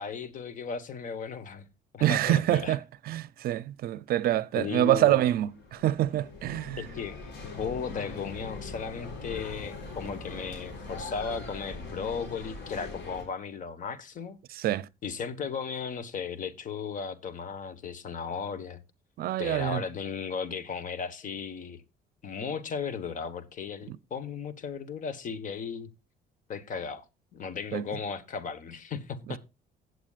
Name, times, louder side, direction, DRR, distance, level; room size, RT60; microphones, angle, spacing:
voice 1, 0.0-1.6 1.9-2.8 4.5-5.3 6.8-14.4 15.0-18.8 19.4-21.8 22.2-25.9 26.5-27.0 27.3-29.4, left 6 dB, 50° left, 1.3 m, -36 dB
voice 2, 2.0-2.8 3.1-6.8 14.5-14.9 19.2-19.8 23.9-24.0 27.7-27.9, right 13 dB, 60° right, 0.5 m, -26 dB
sound 1, 5.1-13.2, left 3 dB, 75° left, 6.3 m, -41 dB
16.0 x 8.0 x 2.4 m
cardioid pair, 110°, 17 cm